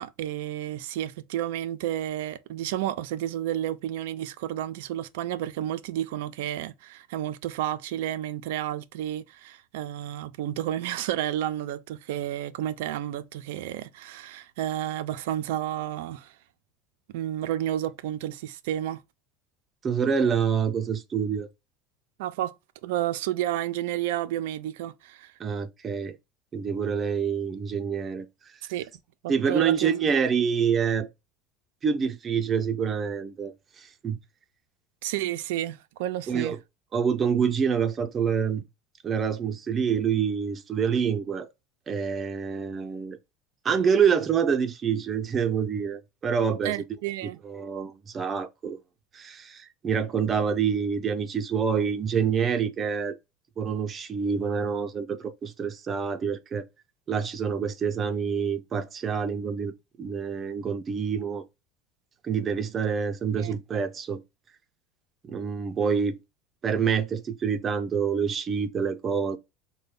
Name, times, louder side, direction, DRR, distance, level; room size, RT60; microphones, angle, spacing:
voice 1, 0.0-16.3 17.1-19.0 22.2-22.5 22.8-25.3 28.6-28.9 29.2-30.2 35.0-36.6 46.6-47.4 63.3-63.6, right 12 dB, 80° right, 0.4 m, -31 dB
voice 2, 19.8-21.5 25.4-26.2 26.5-28.3 29.3-31.1 31.8-34.2 36.3-36.6 36.9-38.6 39.0-41.5 41.9-43.2 43.6-46.8 47.2-48.8 49.1-53.2 53.6-56.7 57.1-61.4 62.2-64.2 65.2-66.2 66.6-69.4, right 6 dB, 30° right, 0.6 m, -27 dB
4.1 x 2.2 x 3.7 m
supercardioid pair, 100°, 0 cm